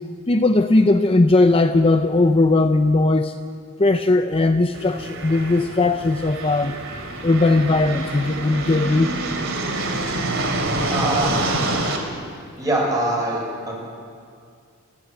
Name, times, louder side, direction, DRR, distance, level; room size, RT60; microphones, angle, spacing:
voice 1, 0.3-3.4 3.8-6.8 7.2-9.1, left 2 dB, 25° left, 8 dB, 0.6 m, -18 dB
sound 1, 4.7-12.0, right 2 dB, 65° right, 3.2 m, -27 dB
voice 2, 10.9-11.5 12.6-13.8, right 1 dB, 15° right, -3 dB, 6.3 m, -23 dB
28.5 x 13.0 x 8.2 m, 2.3 s
head